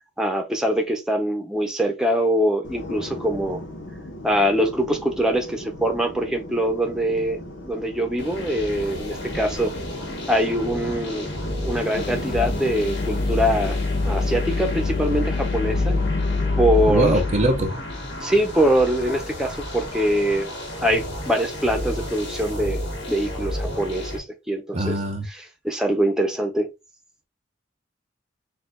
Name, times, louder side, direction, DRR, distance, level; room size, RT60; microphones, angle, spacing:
voice 1, 0.2-3.6 4.2-9.7 10.3-11.3 11.6-13.8 14.0-15.9 16.6-17.2 18.2-20.5 20.8-22.8 23.1-25.0 25.3-26.7, equal, 5° right, 0.9 m, -23 dB
sound 1, 2.6-17.6, left 1 dB, 90° left, 1.1 m, -38 dB
sound 2, 8.2-24.2, left 1 dB, 65° left, 1.9 m, -31 dB
sound 3, 12.0-19.0, left 3 dB, 40° left, 0.3 m, -27 dB
voice 2, 16.8-17.7 24.7-25.3, right 1 dB, 35° right, 0.5 m, -22 dB
4.1 x 2.5 x 3.8 m
head